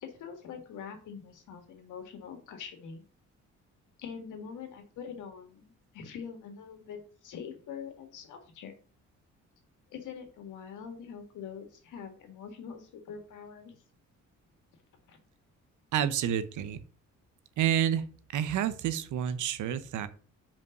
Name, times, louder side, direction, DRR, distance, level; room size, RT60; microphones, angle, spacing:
voice 1, 0.0-3.0 4.0-8.7 9.9-13.8 15.1-15.2, left 7 dB, 85° left, 5 dB, 2.0 m, -44 dB
voice 2, 15.9-16.8 17.6-18.0 18.3-20.1, right 10 dB, 80° right, 13 dB, 0.9 m, -29 dB
5.4 x 5.2 x 6.5 m, 0.41 s
cardioid pair, 90°, 30 cm